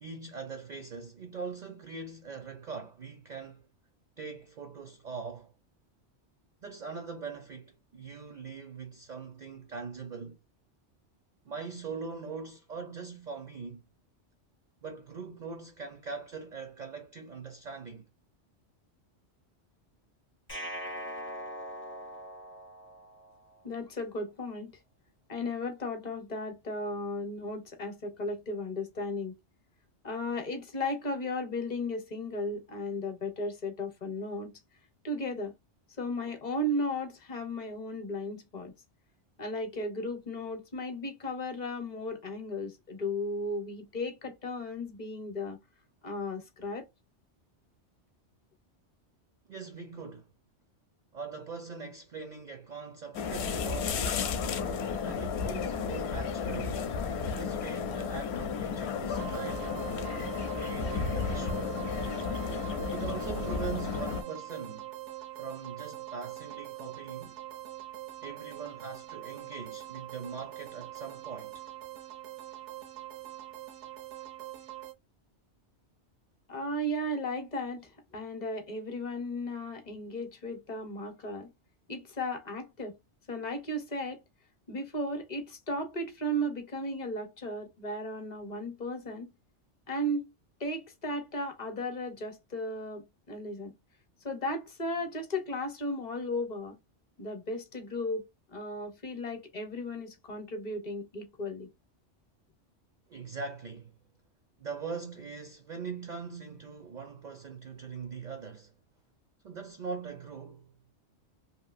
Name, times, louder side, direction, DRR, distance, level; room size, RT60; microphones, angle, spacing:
voice 1, 0.0-3.7 4.2-5.5 6.6-10.4 11.5-13.8 14.8-18.0 49.5-50.3 51.1-54.3 55.0-56.9 57.4-59.7 60.4-61.8 62.9-64.9 65.3-67.4 68.2-71.6 103.1-103.9 104.6-108.7 109.4-110.7, right 5 dB, 55° right, 0.5 m, -42 dB
sound 1, 20.5-23.6, equal, 15° left, 0.5 m, -41 dB
voice 2, 23.6-24.7 25.3-29.3 30.0-34.6 35.0-35.5 36.0-38.7 39.4-45.6 46.0-46.9 76.5-81.5 81.9-83.0 83.3-84.2 84.7-89.3 89.9-90.3 90.6-93.7 94.2-96.7 97.2-98.3 98.5-101.7, left 1 dB, 40° left, 0.8 m, -35 dB
sound 2, 53.1-64.2, left 6 dB, 70° left, 0.8 m, -33 dB
sound 3, 59.1-74.9, right 15 dB, 90° right, 1.0 m, -43 dB
2.9 x 2.6 x 2.4 m
omnidirectional pair, 1.2 m